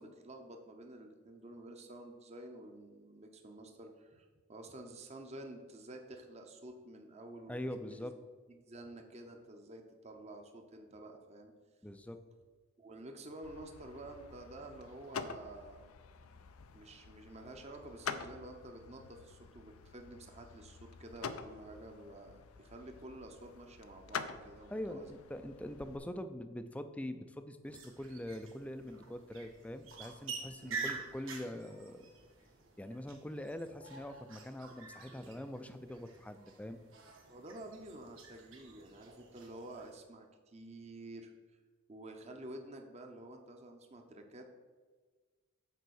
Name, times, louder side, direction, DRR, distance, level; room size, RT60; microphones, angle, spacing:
voice 1, 0.0-8.1 8.5-11.5 12.8-15.9 16.7-25.2 30.6-31.0 35.1-35.4 37.3-41.6 41.9-44.6, right 1 dB, 30° right, 4 dB, 0.7 m, -50 dB
voice 2, 7.5-8.1 11.8-12.2 24.7-32.1 32.8-36.8, left 1 dB, 5° left, 9 dB, 0.4 m, -43 dB
sound 1, 13.4-26.0, left 6 dB, 90° left, 0.5 m, -47 dB
sound 2, 27.6-39.9, right 4 dB, 65° right, 1.4 m, -48 dB
6.7 x 4.7 x 6.3 m, 1.4 s
head